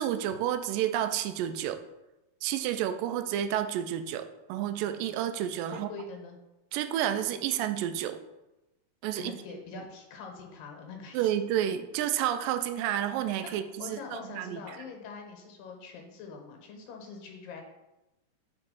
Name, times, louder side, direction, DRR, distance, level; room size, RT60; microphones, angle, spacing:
voice 1, 0.0-1.8 2.4-5.9 6.7-8.2 9.0-9.3 11.1-14.6, right 11 dB, 85° right, 9 dB, 2.2 m, -30 dB
voice 2, 5.7-6.4 9.1-11.3 13.4-13.5 13.8-17.6, left 5 dB, 80° left, 2 dB, 2.7 m, -44 dB
6.7 x 3.5 x 5.4 m, 0.98 s
omnidirectional pair, 4.0 m